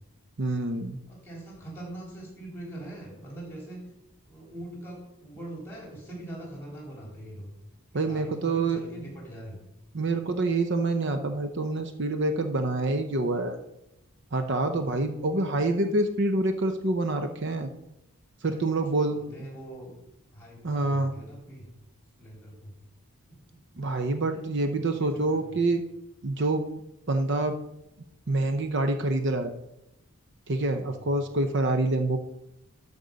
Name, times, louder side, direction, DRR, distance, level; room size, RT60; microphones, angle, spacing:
voice 1, 0.4-1.0 7.9-8.8 9.9-13.6 14.3-17.7 18.4-19.2 20.6-21.1 23.8-25.8 26.2-26.7 27.1-27.6 28.3-29.5 30.5-32.2, right 2 dB, 55° right, 7 dB, 0.7 m, -26 dB
voice 2, 1.1-3.8 4.2-7.5 7.9-9.6 18.5-19.9 20.3-21.7 22.2-22.7 23.3-23.6 24.3-25.6 30.8-31.1, right 1 dB, 10° left, -2 dB, 3.5 m, -43 dB
13.0 x 5.3 x 5.3 m, 0.85 s
head